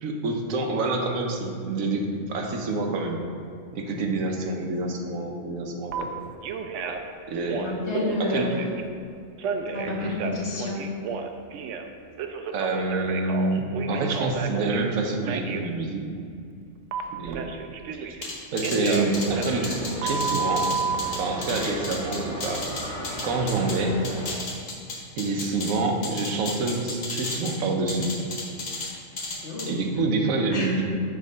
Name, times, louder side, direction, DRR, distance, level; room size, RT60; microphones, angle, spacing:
voice 1, 0.0-3.2 3.7-6.1 6.9-7.0 7.3-7.7 8.2-8.5 9.8-10.1 12.5-16.0 17.1-17.5 17.9-18.2 18.5-19.7 20.0-20.7 21.2-22.6 23.2-23.9 25.2-28.1 29.7-30.8, right 3 dB, 85° right, 2 dB, 1.2 m, -27 dB
Telephone, 5.9-6.0 6.4-7.1 7.4-8.8 9.4-11.9 12.2-14.9 15.3-15.6 16.9-18.3 18.6-21.0, right 5 dB, 70° right, 0.8 m, -31 dB
voice 2, 7.6-8.7 9.7-10.8 29.4-29.8 30.5-30.7, left 2 dB, 55° left, -2 dB, 1.4 m, -29 dB
Clicks (Technology), 18.2-23.8 24.0-25.7 26.0-27.5 27.9-28.9 29.2-29.7, left 3 dB, 70° left, 1.5 m, -33 dB
sound 1, 19.0-24.3, equal, 5° left, 1.2 m, -36 dB
7.6 x 3.7 x 5.4 m, 2.2 s
omnidirectional pair, 1.4 m